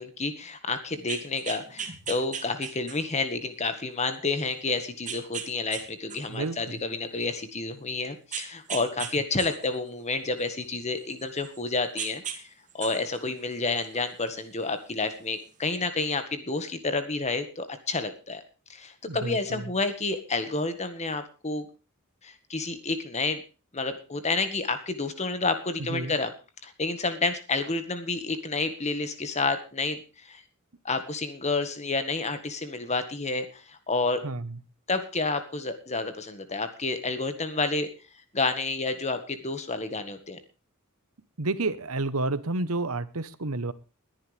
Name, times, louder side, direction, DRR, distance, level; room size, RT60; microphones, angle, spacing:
voice 1, 0.0-12.5 12.7-18.4 18.7-21.6 22.2-23.4 23.7-26.3 26.6-30.4 30.8-34.2 34.9-37.9 38.3-40.4, left 3 dB, 30° left, 9 dB, 1.7 m, -30 dB
sound 1, 0.9-3.2 3.8-3.9 5.1-5.8 6.1-7.4 8.3-9.1 9.4-11.6 12.0-12.4 12.7-14.1 15.1-15.2, right 7 dB, 35° right, 2.4 m, -37 dB
voice 2, 6.3-6.8 19.0-19.6 25.9-26.1 34.2-34.6 41.4-43.7, right 2 dB, 80° right, 15 dB, 1.2 m, -30 dB
21.5 x 10.5 x 3.5 m, 0.32 s
head